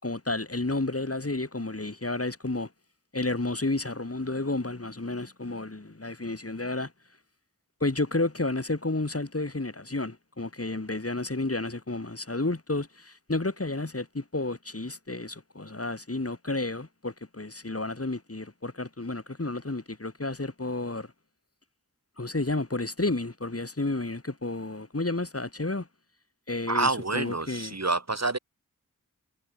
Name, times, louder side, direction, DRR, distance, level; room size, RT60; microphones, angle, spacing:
voice 1, 0.0-2.7 3.1-6.9 7.8-21.1 22.2-25.9 26.5-27.8, left 2 dB, 45° left, 7.1 m, -31 dB
voice 2, 26.7-28.4, right 3 dB, 55° right, 4.6 m, -27 dB
wide cardioid pair, 45°, 32 cm